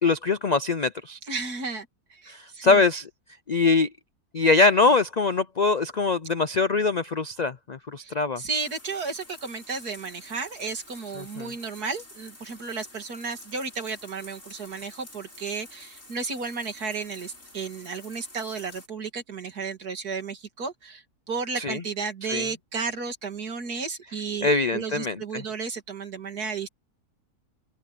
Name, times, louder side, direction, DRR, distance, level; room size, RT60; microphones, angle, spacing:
voice 1, 0.0-1.2 2.3-3.1 3.5-3.9 4.3-8.4 11.2-11.5 21.6-21.8 22.3-22.5 24.4-25.4, left 3 dB, 70° left, 0.4 m, -23 dB
voice 2, 1.3-2.8 8.0-8.1 8.4-26.7, right 4 dB, 75° right, 3.0 m, -33 dB
sound 1, 8.5-18.9, left 1 dB, 55° left, 7.6 m, -49 dB
open air
omnidirectional pair, 1.7 m